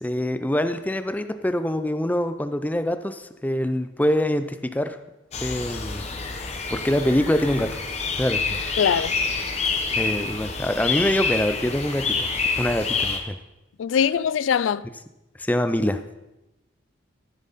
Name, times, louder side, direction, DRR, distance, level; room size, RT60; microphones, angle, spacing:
voice 1, 0.0-5.0 5.4-6.1 6.7-7.7 8.2-8.6 10.0-12.2 12.6-13.4 15.4-16.0, left 1 dB, 10° left, 0.4 m, -24 dB
sound 1, 5.3-13.2, left 4 dB, 35° left, 1.1 m, -27 dB
voice 2, 8.8-9.1 13.8-14.8, left 7 dB, 85° left, 0.3 m, -22 dB
13.5 x 7.3 x 4.1 m
head